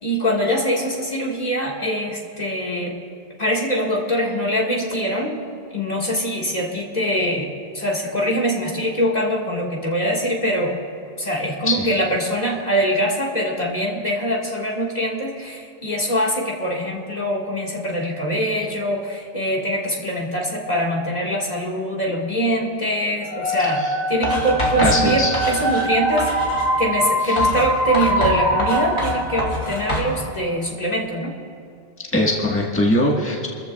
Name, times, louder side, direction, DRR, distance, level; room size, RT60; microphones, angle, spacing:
voice 1, 0.0-3.0 3.4-5.4 5.7-10.8 11.2-26.3 26.8-31.3, equal, 40° left, -3 dB, 1.9 m, -23 dB
sound 1, 23.3-30.1, equal, 50° right, 3.2 m, -23 dB
Writing, 24.2-25.9 26.2-26.7 27.4-30.1, left 1 dB, 70° left, 2.8 m, -27 dB
voice 2, 24.8-25.3 27.2-27.4 32.1-33.5, left 1 dB, 10° left, -3 dB, 1.5 m, -21 dB
28.5 x 14.0 x 2.3 m, 2.3 s
omnidirectional pair, 1.0 m